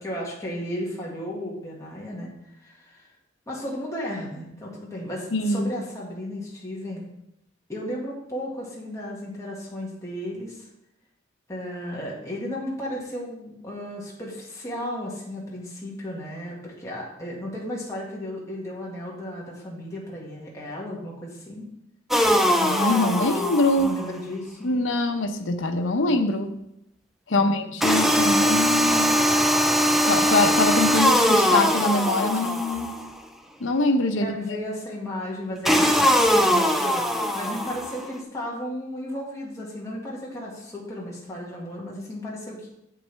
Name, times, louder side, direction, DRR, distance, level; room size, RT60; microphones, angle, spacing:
voice 1, 0.0-2.3 2.6-3.1 3.5-7.0 7.7-10.7 11.5-21.7 23.8-24.7 27.3-27.6 34.2-42.7, left 1 dB, 15° left, -5 dB, 1.8 m, -34 dB
voice 2, 5.3-5.7 22.6-23.9 24.6-26.5 27.3-29.3 30.0-32.9 33.6-34.3, left 2 dB, 85° left, 7 dB, 0.8 m, -23 dB
sound 1, 22.1-24.1 27.8-33.1 35.7-38.1, equal, ahead, 0.5 m, -21 dB
7.9 x 7.6 x 3.4 m, 0.80 s
head